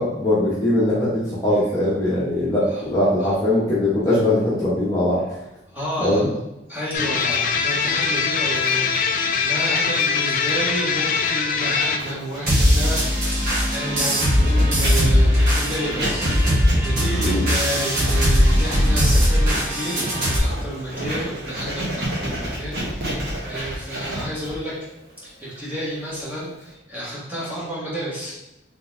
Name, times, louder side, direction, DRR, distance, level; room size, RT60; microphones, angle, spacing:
voice 1, 0.0-5.2 6.0-6.3 17.2-17.4, left 1 dB, 20° left, -9 dB, 1.0 m, -21 dB
voice 2, 5.7-6.3 6.7-13.0 13.3-24.7 25.2-28.5, equal, 10° right, -8 dB, 1.3 m, -31 dB
sound 1, 6.9-12.0, left 5 dB, 45° left, 0.3 m, -22 dB
Writing, 12.0-26.7, right 1 dB, 70° right, 1.2 m, -31 dB
sound 2, 12.5-20.4, equal, 50° right, 1.3 m, -19 dB
4.0 x 3.5 x 2.7 m, 0.93 s
head